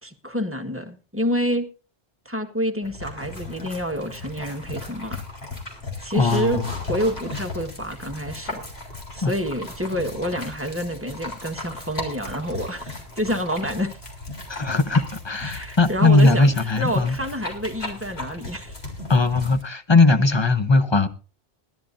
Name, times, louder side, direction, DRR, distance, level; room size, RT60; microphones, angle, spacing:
voice 1, 0.0-1.7 2.2-5.2 6.0-6.6 6.9-8.6 9.1-14.0 15.4-18.8, equal, 10° right, 1.3 m, -28 dB
sound 1, 2.8-19.6, left 3 dB, 70° left, 3.7 m, -36 dB
voice 2, 6.1-6.6 9.2-9.3 14.5-17.2 19.1-21.1, left 3 dB, 30° left, 0.8 m, -19 dB
20.0 x 12.5 x 2.6 m
omnidirectional pair, 1.1 m